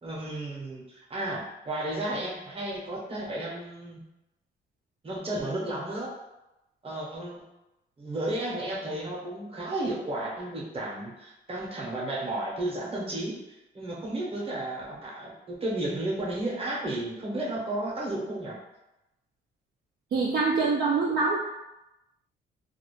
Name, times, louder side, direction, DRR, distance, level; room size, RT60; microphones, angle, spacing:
voice 1, 0.0-4.0 5.0-6.1 6.8-7.4 8.0-18.6, right 1 dB, 30° right, -4 dB, 0.8 m, -33 dB
voice 2, 20.1-21.4, right 4 dB, 50° right, -3 dB, 0.4 m, -24 dB
2.4 x 2.0 x 3.0 m, 0.95 s
cardioid pair, 90°, 20 cm